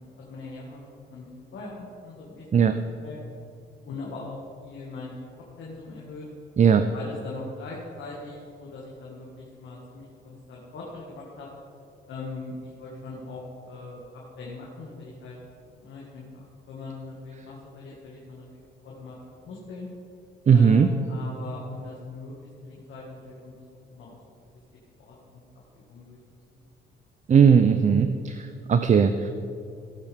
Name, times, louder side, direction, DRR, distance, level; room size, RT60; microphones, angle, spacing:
voice 1, 0.0-2.7 3.0-3.2 3.8-4.4 4.6-6.3 6.9-11.5 12.1-14.0 14.4-15.4 15.8-19.9 20.5-23.5 23.9-24.2 25.0-25.4 25.7-26.2 26.5-26.6, left 3 dB, 70° left, -4 dB, 2.1 m, -41 dB
voice 2, 6.6-6.9 20.5-20.9 27.3-29.3, right 7 dB, 35° right, 9 dB, 0.5 m, -18 dB
17.0 x 8.4 x 3.6 m, 2.5 s
cardioid pair, 90°, 20 cm